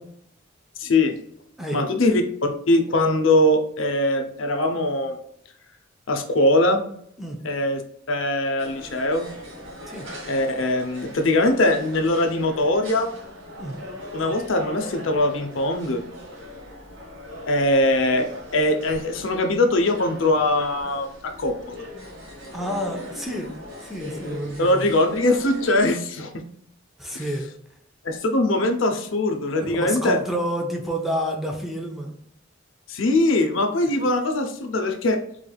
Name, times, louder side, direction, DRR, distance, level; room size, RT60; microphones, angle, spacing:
voice 1, 0.8-1.1 1.7-5.2 6.1-6.9 7.4-7.8 8.1-9.3 10.3-13.1 14.1-16.0 17.4-18.3 18.5-21.8 24.6-26.4 27.1-27.2 28.0-30.2 32.9-35.2, left 1 dB, 75° left, 5 dB, 0.7 m, -21 dB
sound 1, 8.6-25.9, left 1 dB, 75° right, 1.2 m, -40 dB
voice 2, 22.5-24.9 27.0-27.5 29.5-32.2 34.0-34.1, equal, ahead, 0 dB, 0.6 m, -29 dB
3.8 x 3.2 x 2.3 m, 0.68 s
head